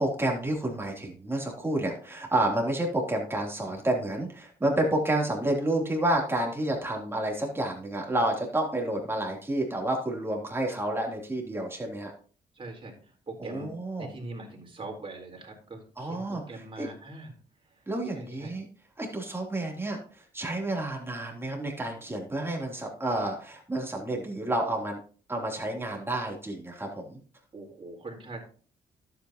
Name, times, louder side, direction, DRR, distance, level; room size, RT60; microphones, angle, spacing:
voice 1, 0.0-12.1 13.4-14.1 16.0-16.9 17.9-18.7 19.0-25.0 25.3-27.2, right 1 dB, 15° right, -1 dB, 3.3 m, -30 dB
voice 2, 12.5-13.7 14.0-17.3 18.1-18.5 27.5-28.4, right 2 dB, 30° right, 0 dB, 4.0 m, -42 dB
11.5 x 8.3 x 3.0 m, 0.41 s
cardioid pair, 90°, 17 cm